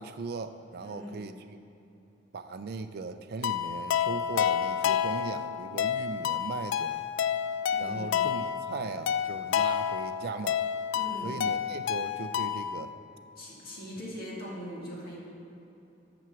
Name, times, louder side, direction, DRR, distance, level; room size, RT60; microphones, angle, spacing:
voice 1, 0.0-1.4 2.3-7.1 7.8-10.6 11.2-13.0, right 4 dB, 55° right, 8 dB, 0.4 m, -38 dB
voice 2, 0.8-1.2 7.7-8.2 10.9-11.4 13.4-15.2, equal, 55° left, -5 dB, 2.2 m, -41 dB
sound 1, 3.4-12.8, left 8 dB, 85° left, 0.3 m, -30 dB
7.6 x 6.0 x 6.9 m, 2.9 s
head